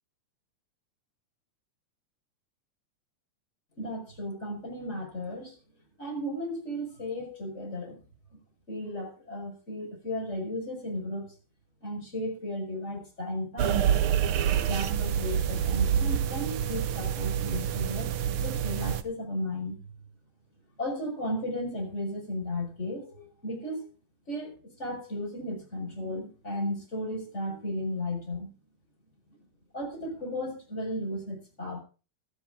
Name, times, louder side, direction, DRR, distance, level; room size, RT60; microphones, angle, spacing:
voice 1, 3.8-5.6 6.0-8.0 8.3-8.4 8.7-11.3 11.8-13.8 14.6-19.9 20.8-23.9 24.3-28.5 29.7-31.8, left 1 dB, 20° left, 1 dB, 5.6 m, -35 dB
sound 1, 13.6-19.0, right 9 dB, 75° right, 1.2 m, -27 dB
15.0 x 13.0 x 3.7 m, 0.34 s
omnidirectional pair, 3.6 m